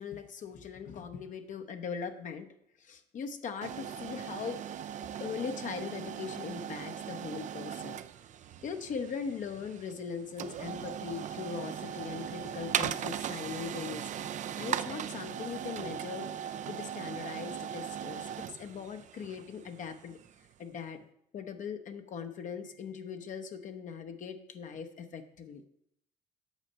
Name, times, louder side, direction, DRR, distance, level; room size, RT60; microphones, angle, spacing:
voice 1, 0.0-2.5 2.8-4.6 5.2-8.0 8.6-14.3 14.6-20.2 20.6-21.0 21.3-25.7, left 6 dB, 50° left, 7 dB, 0.8 m, -40 dB
sound 1, 3.6-20.5, right 9 dB, 45° right, 0.4 m, -39 dB
8.2 x 6.3 x 5.4 m, 0.74 s
cardioid pair, 110°, 17 cm